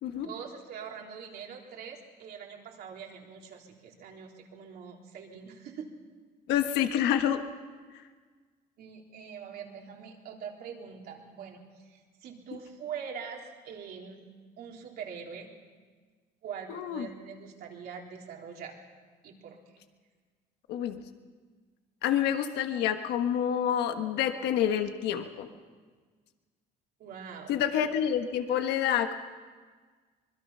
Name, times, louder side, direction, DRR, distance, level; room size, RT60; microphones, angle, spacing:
voice 1, 0.1-5.9 8.8-14.3 14.6-15.5 16.4-18.8 19.2-19.8 27.0-27.6, right 7 dB, 70° right, 0 dB, 3.6 m, -43 dB
voice 2, 6.5-7.4 16.7-17.1 20.7-21.0 22.0-25.5 27.5-29.1, left 9 dB, 85° left, 7 dB, 1.4 m, -28 dB
25.0 x 21.5 x 5.6 m, 1.5 s
cardioid pair, 110°, 17 cm